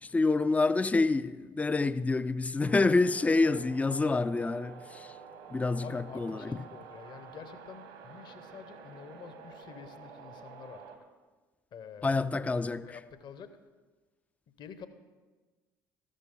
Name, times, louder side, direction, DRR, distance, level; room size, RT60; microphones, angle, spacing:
voice 1, 0.0-5.1 5.5-6.7 12.0-13.0, left 3 dB, 15° left, 0.4 m, -27 dB
sound 1, 2.6-11.0, right 6 dB, 75° right, 1.6 m, -49 dB
voice 2, 5.8-10.8 11.7-12.2 12.8-13.6 14.6-14.9, left 7 dB, 50° left, 1.0 m, -48 dB
13.5 x 12.0 x 3.8 m
figure-of-eight pair, 55°, 10 cm